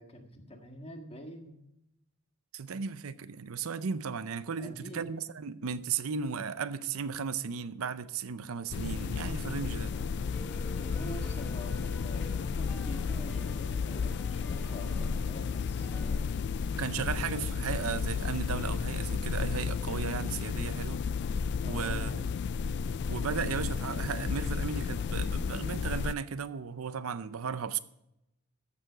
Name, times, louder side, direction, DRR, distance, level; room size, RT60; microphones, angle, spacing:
voice 1, 0.0-1.6 4.6-5.1 10.8-15.9 21.6-22.3, equal, 30° left, 1.6 m, -45 dB
voice 2, 2.5-9.9 16.7-21.1 21.6-22.3 23.1-27.8, right 6 dB, 85° right, 0.6 m, -35 dB
sound 1, 8.7-26.1, left 5 dB, 55° left, 0.3 m, -33 dB
sound 2, 9.9-16.2, equal, 10° left, 1.4 m, -50 dB
14.0 x 6.9 x 4.9 m
head